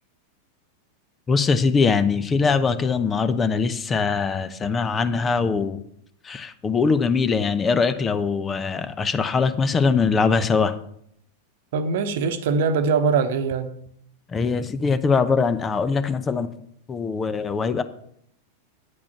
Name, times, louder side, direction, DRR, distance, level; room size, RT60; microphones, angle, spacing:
voice 1, 1.3-5.8 6.2-10.7 14.3-16.5 16.9-17.8, left 5 dB, 20° left, 13 dB, 0.8 m, -22 dB
voice 2, 11.7-13.8, right 5 dB, 55° right, 10 dB, 1.1 m, -22 dB
9.9 x 8.6 x 5.9 m, 0.69 s
figure-of-eight pair, 90°, 0 cm